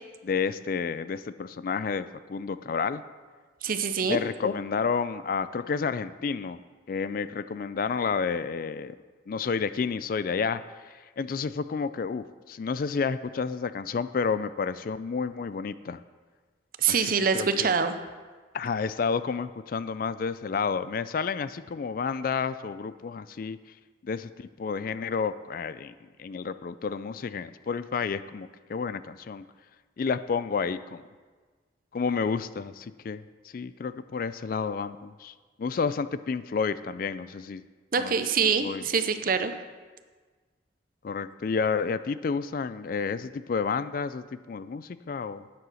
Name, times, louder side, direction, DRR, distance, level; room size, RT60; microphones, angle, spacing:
voice 1, 0.2-3.0 4.1-6.6 6.9-8.9 9.3-16.0 16.9-17.7 18.5-23.6 24.0-25.9 26.2-29.4 30.0-31.0 31.9-37.6 38.0-38.1 38.6-38.9 41.0-45.4, left 5 dB, 50° left, 14 dB, 0.3 m, -30 dB
voice 2, 3.6-4.2 16.8-17.9 37.9-39.5, right 6 dB, 50° right, 9 dB, 0.6 m, -25 dB
9.3 x 7.6 x 6.2 m, 1.4 s
head